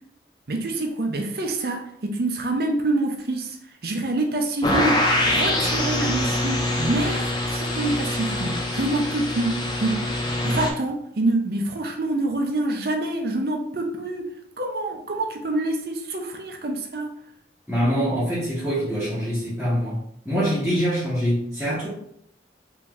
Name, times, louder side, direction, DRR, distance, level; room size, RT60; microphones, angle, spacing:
voice 1, 0.5-3.6 3.8-10.0 10.4-14.3 14.6-17.1, right 2 dB, 55° right, 3 dB, 0.6 m, -26 dB
sound 1, 4.6-10.7, left 1 dB, 25° left, 0.5 m, -24 dB
voice 2, 17.7-20.0 20.2-21.9, equal, 5° right, -10 dB, 0.8 m, -24 dB
3.1 x 2.8 x 3.5 m, 0.72 s
head